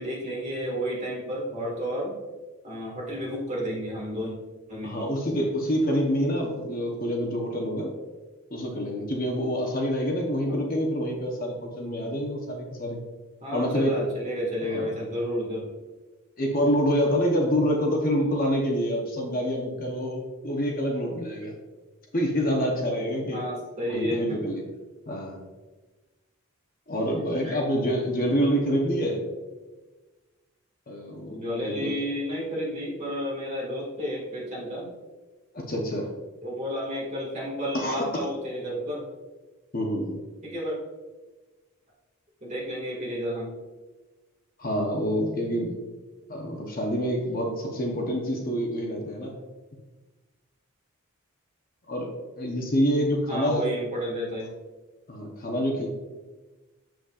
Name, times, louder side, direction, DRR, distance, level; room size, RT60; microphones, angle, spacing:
voice 1, 0.0-2.1 2.6-4.3 4.7-5.1 10.5-10.6 13.4-15.7 23.3-24.5 27.4-27.6 31.3-34.9 36.4-39.0 40.4-40.8 42.4-43.5 53.3-54.5, equal, 30° right, -4 dB, 1.9 m, -31 dB
voice 2, 4.8-7.9 8.5-13.0 13.5-14.0 14.7-14.9 16.4-21.5 22.1-23.4 23.9-24.7 25.1-25.4 26.9-29.2 30.9-32.0 35.5-36.1 37.7-38.2 39.7-40.2 44.6-45.7 46.3-49.3 51.9-53.7 55.1-55.9, equal, 40° left, 1 dB, 0.8 m, -27 dB
7.0 x 6.1 x 2.4 m, 1.2 s
head